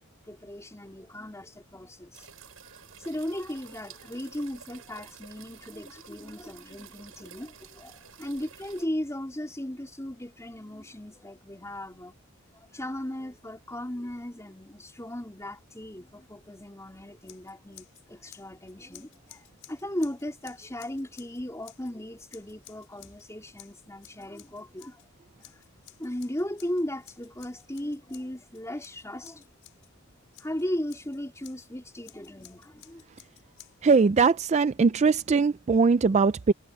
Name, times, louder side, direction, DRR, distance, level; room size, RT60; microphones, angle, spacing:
voice 1, 0.3-2.3 3.0-7.9 8.2-12.1 12.5-25.0 26.0-29.4 30.4-33.0, left 1 dB, 15° left, 3.6 m, -36 dB
sound 1, 2.1-8.9, right 7 dB, 70° right, 8.0 m, -51 dB
Scissors, 17.2-18.0 18.3-21.9 22.3-23.3 23.6-25.1 25.4-29.9 30.3-31.7 32.0-34.0, left 14 dB, 65° left, 6.2 m, -54 dB
voice 2, 33.8-36.5, right 4 dB, 30° right, 0.3 m, -21 dB
head